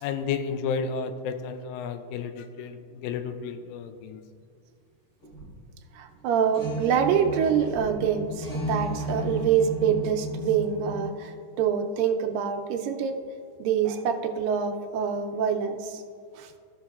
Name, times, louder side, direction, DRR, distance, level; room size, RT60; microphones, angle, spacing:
voice 1, 0.0-4.2, left 6 dB, 90° left, 9 dB, 2.3 m, -32 dB
sound 1, 5.2-5.7 6.1-6.2 6.5-11.1, equal, 30° left, 1.9 m, -33 dB
voice 2, 5.9-13.2 13.6-16.0 16.3-16.5, right 7 dB, 85° right, 5 dB, 2.3 m, -26 dB
15.5 x 6.1 x 2.4 m, 2.2 s
omnidirectional pair, 4.0 m